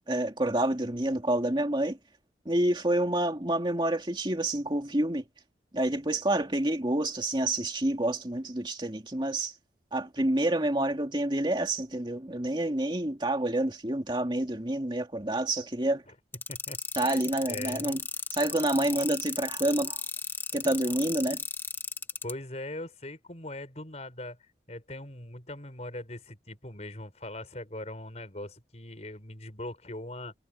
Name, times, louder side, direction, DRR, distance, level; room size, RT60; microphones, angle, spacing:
voice 1, 0.0-2.0 2.5-5.2 5.7-9.5 9.9-16.0 17.0-18.0 18.3-20.0 20.5-21.4, right 1 dB, 25° right, 2.4 m, -28 dB
sound 1, 16.3-22.3, left 4 dB, 15° left, 1.7 m, -35 dB
voice 2, 16.5-18.0 22.2-24.4 24.7-30.3, left 1 dB, 40° left, 5.2 m, -41 dB
head